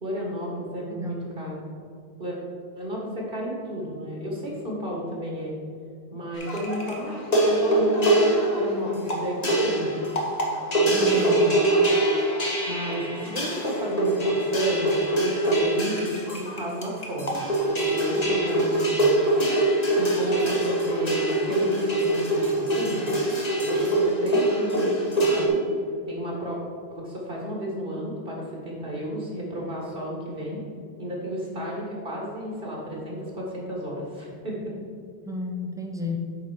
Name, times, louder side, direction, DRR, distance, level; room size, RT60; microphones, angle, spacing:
voice 1, 0.0-1.6 2.2-2.4 2.8-5.5 6.1-10.0 10.7-11.4 12.7-17.4 17.7-19.1 19.9-23.1 23.6-25.7 26.1-26.6 26.9-30.6 31.0-34.7, equal, 60° right, -3 dB, 1.9 m, -32 dB
voice 2, 0.9-1.3 10.9-11.5 35.3-36.2, left 1 dB, 5° right, 1 dB, 0.7 m, -33 dB
sound 1, 6.4-25.5, right 1 dB, 40° left, 1.3 m, -24 dB
8.6 x 4.1 x 6.1 m, 2.3 s
omnidirectional pair, 1.1 m